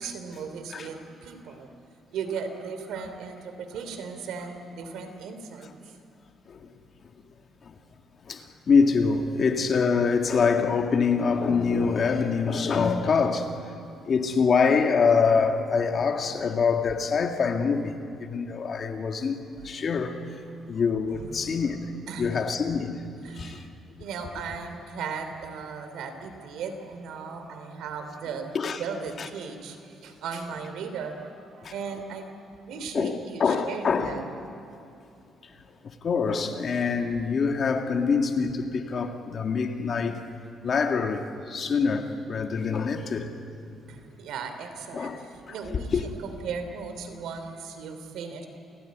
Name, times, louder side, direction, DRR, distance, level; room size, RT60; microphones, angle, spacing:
voice 1, 0.0-1.7 2.1-5.7 20.6-20.8 21.1-21.7 22.1-22.3 23.2-23.7 24.0-28.5 28.8-32.3 32.7-34.2 43.9-48.5, right 5 dB, 85° right, 3.0 m, -37 dB
voice 2, 8.2-13.8 14.1-20.2 20.7-21.8 22.2-23.0 23.3-23.7 28.5-28.8 29.2-29.3 31.6-31.7 32.9-34.2 35.7-40.2 40.6-43.3 44.9-46.0, left 5 dB, 45° left, 2.1 m, -25 dB
28.5 x 17.0 x 9.5 m
cardioid pair, 125°, 0 cm